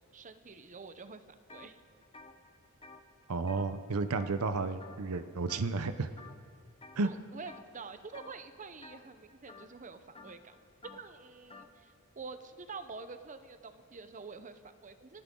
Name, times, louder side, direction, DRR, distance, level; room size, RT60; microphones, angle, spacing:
voice 1, 0.1-1.8 7.0-10.6 10.8-15.2, right 4 dB, 35° right, 10 dB, 0.8 m, -47 dB
sound 1, 1.5-1.7 2.0-4.5 4.8-5.2 5.5-5.9 6.2-7.0 7.5-7.8 8.1-11.7, left 3 dB, 25° left, 0.9 m, -53 dB
voice 2, 3.3-6.1 7.0-7.1, right 3 dB, 75° right, 11 dB, 0.7 m, -32 dB
28.5 x 9.9 x 3.8 m, 2.4 s
head